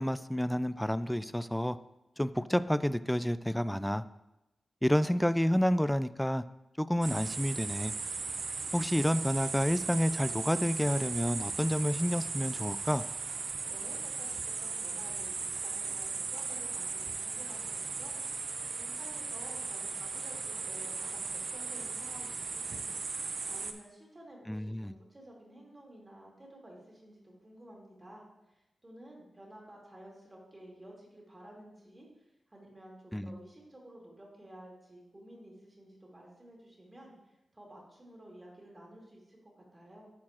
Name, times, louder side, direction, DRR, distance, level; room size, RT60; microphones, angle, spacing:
voice 1, 0.0-1.8 2.2-4.0 4.8-6.4 6.8-7.9 8.7-13.0 24.5-24.9 33.1-33.4, equal, 5° left, 14 dB, 0.3 m, -29 dB
sound 1, 7.0-23.7, right 4 dB, 70° right, 0.6 m, -37 dB
voice 2, 13.7-18.2 18.8-32.1 32.5-37.1 37.5-40.1, right 1 dB, 30° right, -2 dB, 2.3 m, -53 dB
11.5 x 4.4 x 2.9 m, 0.93 s
cardioid pair, 55°, 0 cm